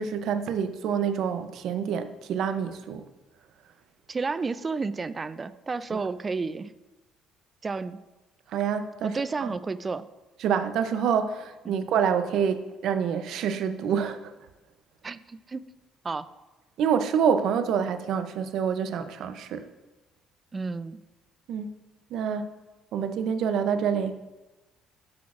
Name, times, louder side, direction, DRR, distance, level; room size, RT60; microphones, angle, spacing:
voice 1, 0.0-3.0 5.9-6.0 8.5-9.5 10.4-14.3 16.8-19.6 21.5-21.7 22.1-22.5 22.9-24.2, right 7 dB, 65° right, 10 dB, 0.6 m, -27 dB
voice 2, 4.1-6.7 7.6-8.0 9.0-10.1 11.7-11.8 15.0-15.7 16.0-16.3 20.5-21.0, right 4 dB, 25° right, 14 dB, 0.3 m, -31 dB
12.0 x 6.1 x 2.5 m, 1.1 s
cardioid pair, 115°, 0 cm